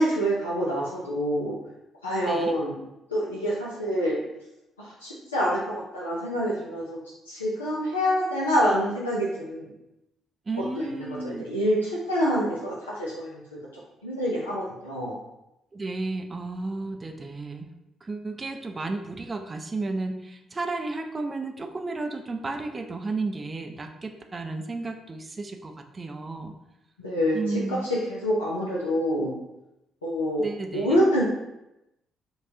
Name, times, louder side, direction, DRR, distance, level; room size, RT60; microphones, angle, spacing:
voice 1, 0.0-1.6 2.0-2.8 3.1-4.2 4.8-7.0 7.3-9.7 10.8-13.4 14.0-15.2 27.0-29.3 30.0-30.5 30.7-31.2, equal, 90° left, -6 dB, 0.5 m, -26 dB
voice 2, 2.2-2.6 10.5-11.4 15.7-17.7 18.0-26.5 27.3-27.9 30.4-31.0, right 3 dB, 30° right, 4 dB, 0.5 m, -33 dB
5.4 x 2.3 x 2.7 m, 0.90 s
figure-of-eight pair, 45°, 0 cm